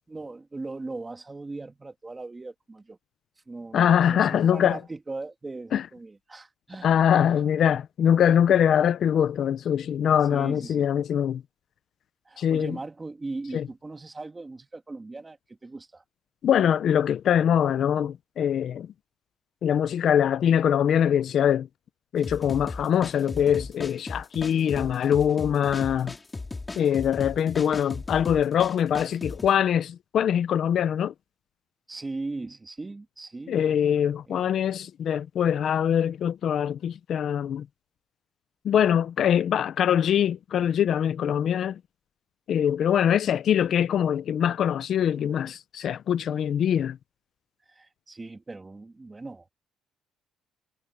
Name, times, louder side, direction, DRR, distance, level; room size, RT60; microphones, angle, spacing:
voice 1, 0.1-3.0 3.5-7.3 10.3-10.9 12.3-16.0 31.9-33.6 34.3-34.6 47.7-49.5, right 3 dB, 15° right, 2.1 m, -39 dB
voice 2, 3.7-4.8 5.7-5.8 6.8-11.4 12.4-12.8 13.5-13.6 16.4-18.9 19.6-21.7 22.1-26.1 26.8-31.1 33.5-37.7 38.6-41.8 42.5-47.0, left 9 dB, 50° left, 0.6 m, -23 dB
sound 1, 22.2-29.5, left 3 dB, 15° left, 4.0 m, -37 dB
cardioid pair, 145°, 0 cm